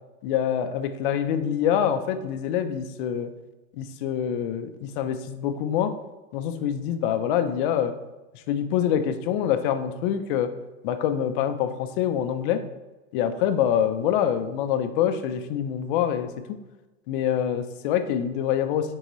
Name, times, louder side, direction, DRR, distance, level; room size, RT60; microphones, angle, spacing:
voice 1, 0.2-3.3 3.8-5.9 6.3-7.9 8.3-10.5 10.8-12.6 13.1-16.3 17.1-18.9, left 9 dB, 40° left, 8 dB, 0.7 m, -25 dB
10.0 x 3.9 x 3.1 m, 1.1 s
hypercardioid pair, 140°, 42 cm